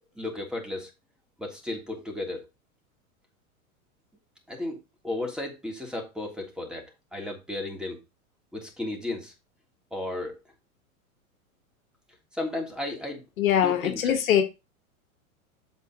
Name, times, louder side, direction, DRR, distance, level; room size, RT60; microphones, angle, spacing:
voice 1, 0.2-0.9 1.4-2.4 4.5-4.8 5.0-6.8 7.1-8.0 8.5-9.3 9.9-10.3 12.3-13.2 13.6-14.2, left 2 dB, ahead, 3.1 m, -34 dB
voice 2, 13.4-14.4, left 10 dB, 75° left, 1.5 m, -22 dB
7.5 x 5.8 x 4.0 m
hypercardioid pair, 100°, 42 cm